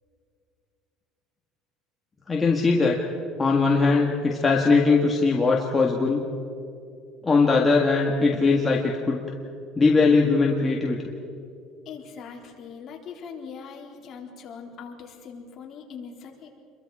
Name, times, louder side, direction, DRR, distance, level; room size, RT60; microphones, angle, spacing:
voice 1, 2.3-3.0 3.4-6.2 7.2-9.2 9.8-11.0, left 4 dB, 15° left, -1 dB, 1.8 m, -20 dB
voice 2, 11.9-16.5, left 6 dB, 40° left, -1 dB, 3.9 m, -41 dB
29.0 x 23.0 x 4.9 m, 2.5 s
cardioid pair, 145°, 0 cm